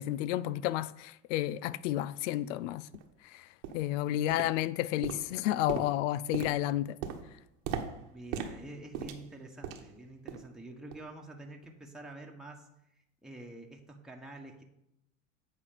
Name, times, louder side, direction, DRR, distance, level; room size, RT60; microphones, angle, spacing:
voice 1, 0.0-2.9 3.2-3.5 3.7-7.0, left 13 dB, 65° left, 0.6 m, -31 dB
sound 1, 1.6-1.7 2.3-2.4 2.9-3.1 3.6-3.9 4.3-4.8 5.0-10.0 10.3-10.6 10.9-11.1 11.6-11.7, right 8 dB, 60° right, 1.3 m, -40 dB
voice 2, 8.1-12.7 12.9-14.6, right 2 dB, ahead, 1.3 m, -47 dB
8.6 x 4.4 x 6.6 m
hypercardioid pair, 90°, 39 cm